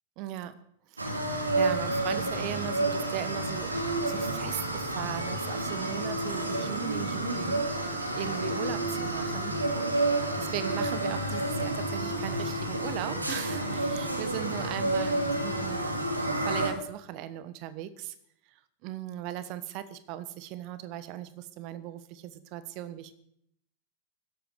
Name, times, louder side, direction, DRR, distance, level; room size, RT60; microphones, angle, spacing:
voice 1, 0.2-0.6 0.9-9.6 10.4-15.8 16.1-18.1 18.8-23.1, right 12 dB, 45° right, 13 dB, 1.4 m, -38 dB
sound 1, 1.0-16.7, right 2 dB, 80° right, 2.6 m, -30 dB
15.5 x 12.5 x 6.8 m, 0.72 s
figure-of-eight pair, 90°, 0 cm